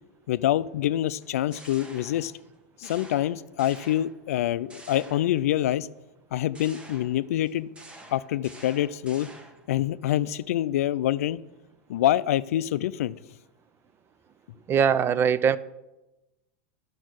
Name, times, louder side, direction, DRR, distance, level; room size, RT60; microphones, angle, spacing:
voice 1, 0.3-2.3 2.8-5.9 6.3-7.7 8.1-9.3 9.7-11.4 11.9-13.1, left 12 dB, 80° left, 0.4 m, -26 dB
sound 1, 1.2-2.5 2.8-4.4 4.7-5.7 6.5-9.7, right 1 dB, 15° right, 1.1 m, -48 dB
voice 2, 14.7-15.6, right 7 dB, 30° right, 0.4 m, -21 dB
10.5 x 6.3 x 6.4 m
hypercardioid pair, 115°, 8 cm